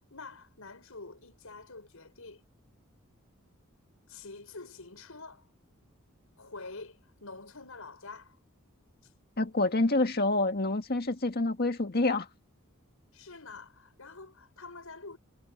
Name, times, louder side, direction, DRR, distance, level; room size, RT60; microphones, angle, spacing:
voice 1, 0.0-2.4 4.1-5.5 6.4-8.4 9.0-9.1 13.1-15.2, left 3 dB, 80° left, 5.5 m, -47 dB
voice 2, 9.4-12.3, left 2 dB, 50° left, 1.8 m, -27 dB
head